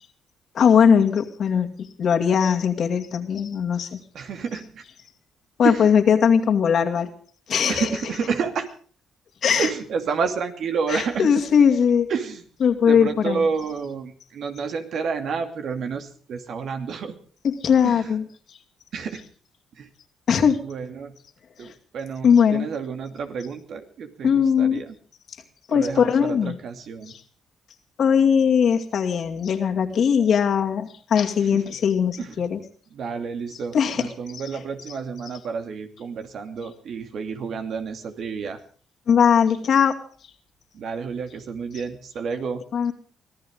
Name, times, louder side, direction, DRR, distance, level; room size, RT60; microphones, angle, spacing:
voice 1, 0.5-4.0 5.6-7.1 7.5-8.2 9.4-9.7 10.9-12.1 12.6-13.5 17.4-18.2 20.3-20.6 21.6-21.7 22.2-22.7 24.2-24.8 25.7-26.6 27.1-27.2 28.0-32.6 33.5-35.0 35.2-35.3 39.1-40.0 42.7-42.9, left 7 dB, 60° left, 4 dB, 2.3 m, -20 dB
voice 2, 4.1-4.7 5.6-5.8 7.7-8.7 9.6-11.3 12.1-12.4 12.8-17.1 17.8-17.9 18.9-19.2 19.8-19.9 20.7-21.1 21.6-21.7 21.9-24.8 25.7-26.1 26.6-27.1 33.0-38.6 40.8-42.6, right 5 dB, 65° right, 6 dB, 2.6 m, -29 dB
24.5 x 16.0 x 3.7 m, 0.43 s
cardioid pair, 90°, 0 cm